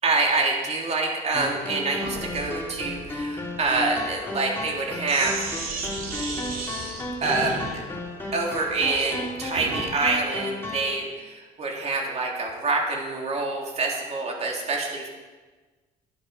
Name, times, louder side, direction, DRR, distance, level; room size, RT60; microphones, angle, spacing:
voice 1, 0.0-5.4 7.2-7.9 8.3-15.1, right 3 dB, 40° right, 0 dB, 3.1 m, -26 dB
sound 1, 1.3-10.9, left 2 dB, 15° left, 2.7 m, -34 dB
Sink (filling or washing), 2.0-10.0, right 3 dB, 55° right, 2.7 m, -36 dB
12.5 x 12.0 x 5.7 m, 1.3 s
cardioid pair, 110°, 17 cm